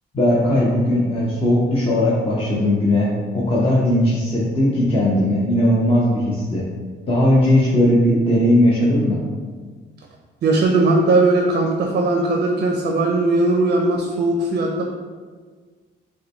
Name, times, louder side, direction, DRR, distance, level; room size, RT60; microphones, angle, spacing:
voice 1, 0.1-6.7 7.1-9.2, left 1 dB, 30° left, -7 dB, 0.8 m, -18 dB
voice 2, 10.4-14.8, right 2 dB, 50° right, 1 dB, 0.5 m, -18 dB
5.9 x 2.2 x 3.0 m, 1.5 s
cardioid pair, 90°, 20 cm